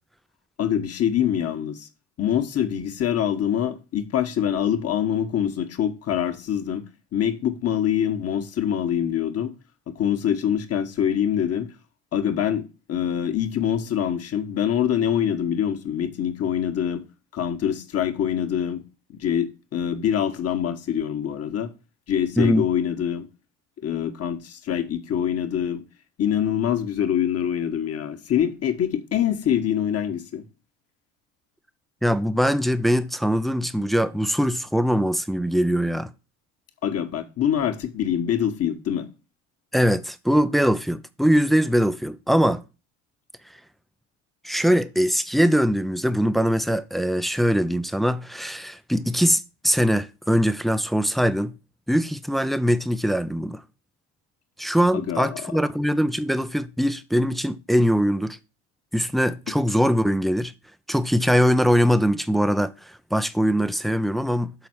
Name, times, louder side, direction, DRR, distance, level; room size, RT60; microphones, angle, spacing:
voice 1, 0.6-1.9 2.2-6.8 7.1-9.5 9.9-11.7 12.1-17.0 17.3-18.8 19.1-21.7 22.1-23.3 23.8-25.8 26.2-30.4 36.8-39.1 54.9-55.4, left 9 dB, 45° left, 1.3 m, -25 dB
voice 2, 32.0-36.1 39.7-42.6 44.4-51.5 51.9-53.6 54.6-58.4 58.9-60.5 60.9-62.7 63.1-64.5, equal, ahead, 0.5 m, -22 dB
7.0 x 4.2 x 6.1 m
hypercardioid pair, 75°, 35 cm